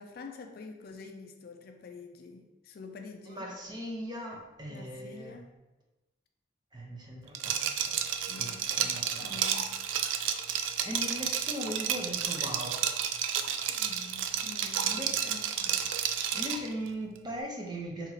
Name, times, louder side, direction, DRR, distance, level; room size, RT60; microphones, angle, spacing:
voice 1, 0.0-3.5 4.7-5.5 8.3-9.8 13.7-15.8 16.3-16.4, left 4 dB, 50° left, 5 dB, 0.3 m, -47 dB
voice 2, 3.3-5.4 6.7-9.4 10.8-12.8 13.4-13.5 14.8-15.3 15.7-15.8 16.3-18.1, equal, 20° right, -1 dB, 0.6 m, -39 dB
Liquid, 7.3-16.7, right 9 dB, 80° right, 0.3 m, -31 dB
2.8 x 2.8 x 3.9 m, 1.0 s
head